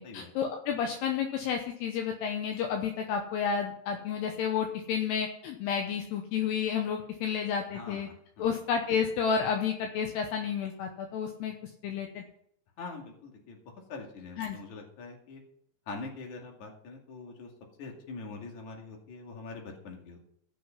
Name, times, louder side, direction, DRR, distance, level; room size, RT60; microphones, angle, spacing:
voice 1, 0.0-8.1 8.4-11.5 11.8-12.2 14.4-14.6, left 7 dB, 75° left, 3 dB, 2.9 m, -31 dB
voice 2, 7.7-8.4 12.8-13.6 13.9-15.4 15.9-17.5 17.8-20.3, left 3 dB, 50° left, 1 dB, 3.2 m, -43 dB
16.0 x 6.5 x 5.8 m, 0.70 s
omnidirectional pair, 5.0 m